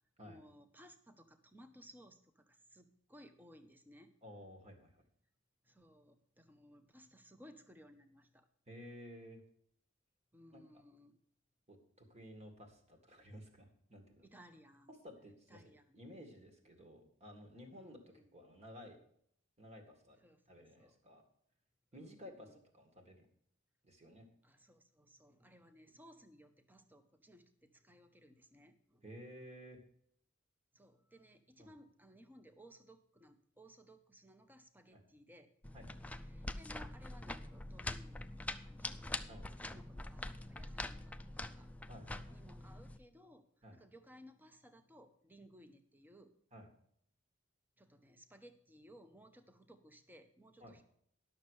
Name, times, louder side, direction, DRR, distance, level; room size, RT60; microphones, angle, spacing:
voice 1, 0.2-4.1 5.6-8.5 10.3-11.2 14.2-14.9 15.5-16.0 17.8-18.3 20.2-21.0 21.9-22.6 24.4-29.0 30.7-35.5 36.3-41.2 41.5-41.7 42.3-43.4 43.7-46.3 47.8-50.8, equal, 10° right, 8 dB, 0.8 m, -60 dB
voice 2, 4.2-5.0 8.7-9.4 10.5-10.8 11.7-14.3 14.9-19.0 19.6-20.2 20.5-21.2 21.9-23.3 23.8-24.3 29.0-29.8 31.6-31.7 34.9-35.0 35.7-36.1 39.3-39.5 41.9-42.4 43.6-43.8 46.5-46.7 50.6-50.8, equal, 35° right, 4 dB, 2.0 m, -54 dB
sound 1, 35.6-43.0, left 2 dB, 5° left, 0.4 m, -44 dB
11.5 x 6.6 x 6.3 m, 0.67 s
head